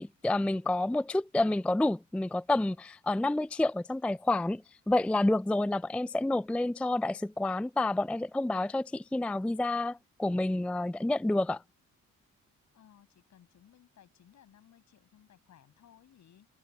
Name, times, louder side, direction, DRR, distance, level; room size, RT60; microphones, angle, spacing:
voice 1, 0.0-4.6 4.9-11.6, left 2 dB, 5° left, 0.4 m, -29 dB
voice 2, 12.7-16.5, left 10 dB, 65° left, 7.5 m, -60 dB
cardioid pair, 90°, 30 cm